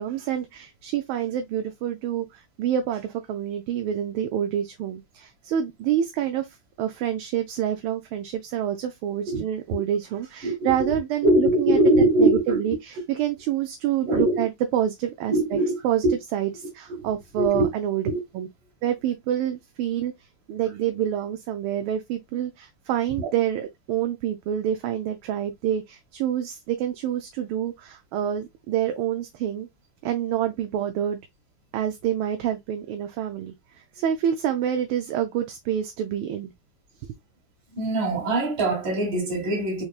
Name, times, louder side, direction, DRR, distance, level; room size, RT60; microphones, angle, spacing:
voice 1, 0.0-6.5 6.8-11.8 12.2-16.0 16.3-18.1 18.3-18.5 18.8-20.1 20.5-29.7 30.0-31.2 31.7-36.5, right 10 dB, 80° right, 1.4 m, -27 dB
voice 2, 10.4-11.0 11.2-12.6 14.1-14.4 15.3-16.2 16.6-17.7 18.1-18.2 23.2-23.3 37.8-39.8, right 1 dB, 60° right, 2.3 m, -22 dB
4.4 x 3.1 x 2.3 m
omnidirectional pair, 2.4 m